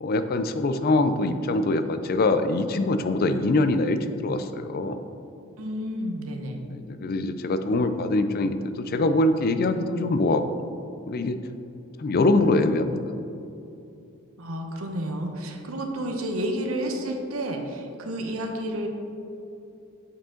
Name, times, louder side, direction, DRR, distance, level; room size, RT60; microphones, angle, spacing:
voice 1, 0.0-5.0 6.7-10.6 11.1-11.4 12.0-13.0, left 2 dB, 45° left, 9 dB, 0.4 m, -23 dB
voice 2, 5.6-6.6 14.4-18.9, right 1 dB, 80° right, 3 dB, 0.9 m, -30 dB
8.3 x 5.0 x 3.8 m, 2.7 s
head